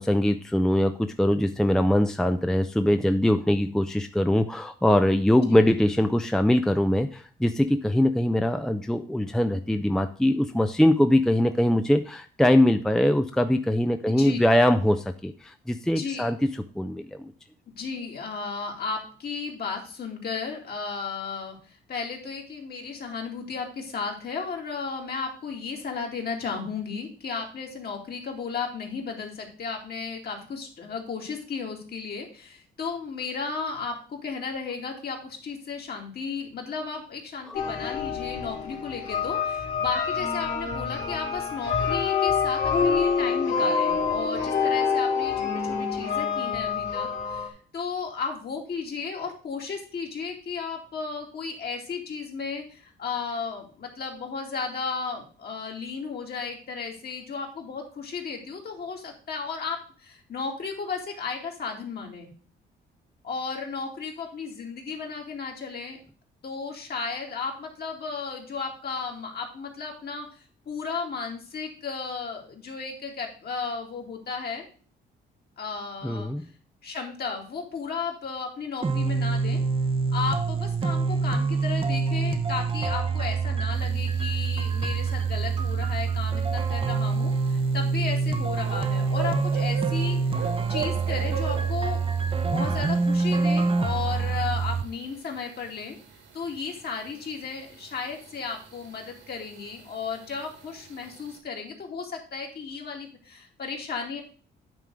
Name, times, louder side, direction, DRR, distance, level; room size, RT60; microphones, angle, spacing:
voice 1, 0.0-17.3 37.5-37.6 76.0-76.4, left 1 dB, 5° left, 8 dB, 0.5 m, -22 dB
voice 2, 14.1-14.4 15.9-16.3 17.7-62.3 63.2-66.0 66.4-74.7 75.6-76.3 76.8-79.6 80.1-92.0 92.4-96.0 96.3-104.2, left 5 dB, 55° left, 0 dB, 2.5 m, -34 dB
sound 1, 37.5-47.5, left 6 dB, 75° left, 2.8 m, -26 dB
sound 2, 78.8-94.8, right 4 dB, 25° right, 0.8 m, -26 dB
sound 3, 83.7-101.4, right 8 dB, 75° right, 2.2 m, -42 dB
9.3 x 3.6 x 6.2 m, 0.41 s
cardioid pair, 90°, 20 cm